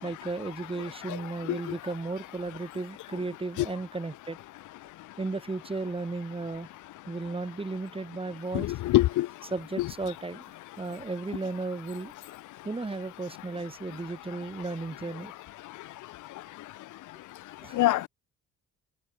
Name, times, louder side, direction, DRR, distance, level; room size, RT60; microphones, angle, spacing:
voice 1, 0.0-4.4 5.2-6.7 7.1-8.8 9.4-10.5 10.8-12.1 12.6-15.3 17.6-17.8, right 3 dB, 20° right, 2.2 m, -35 dB
voice 2, 8.5-9.3 9.8-9.9 17.7-18.1, left 16 dB, 85° left, 0.9 m, -24 dB
cardioid pair, 90°, 30 cm